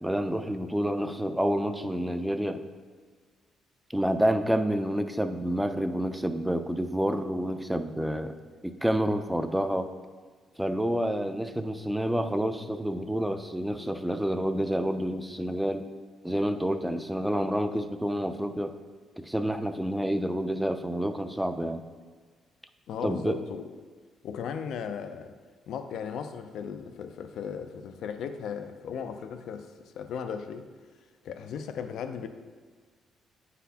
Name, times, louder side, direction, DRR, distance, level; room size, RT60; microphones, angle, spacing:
voice 1, 0.0-2.6 3.9-8.3 8.6-9.9 10.6-15.9 16.2-18.7 19.2-21.8 23.0-23.4, equal, 5° right, 8 dB, 0.4 m, -28 dB
voice 2, 22.9-23.7 24.2-25.3 25.7-30.7 31.2-32.3, left 7 dB, 75° left, 9 dB, 0.4 m, -36 dB
9.1 x 4.0 x 2.8 m, 1.5 s
cardioid pair, 90°, 0 cm